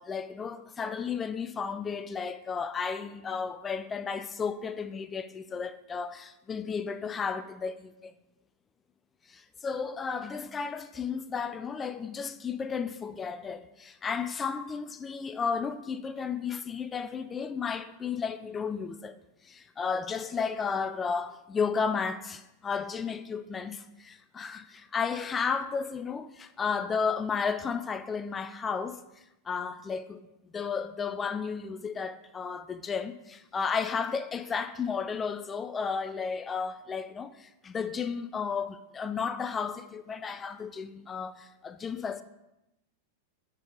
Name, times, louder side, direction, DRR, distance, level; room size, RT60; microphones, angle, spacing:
voice 1, 0.0-8.1 9.3-19.2 19.4-29.0 29.5-30.2 30.5-42.2, left 5 dB, 20° left, 0.3 m, -33 dB
9.5 x 4.0 x 3.9 m
figure-of-eight pair, 90°, 0 cm